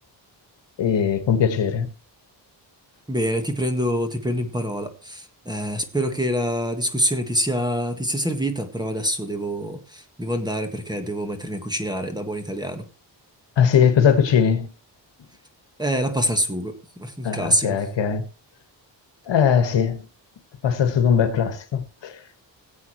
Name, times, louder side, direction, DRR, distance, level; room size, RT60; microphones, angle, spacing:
voice 1, 0.8-1.9 13.6-14.7 17.2-18.2 19.3-20.0 20.6-22.1, left 7 dB, 70° left, 1.7 m, -20 dB
voice 2, 3.1-12.8 15.8-16.7 17.0-17.8, equal, 10° right, 1.7 m, -25 dB
18.5 x 8.4 x 3.2 m
wide cardioid pair, 125°, 45 cm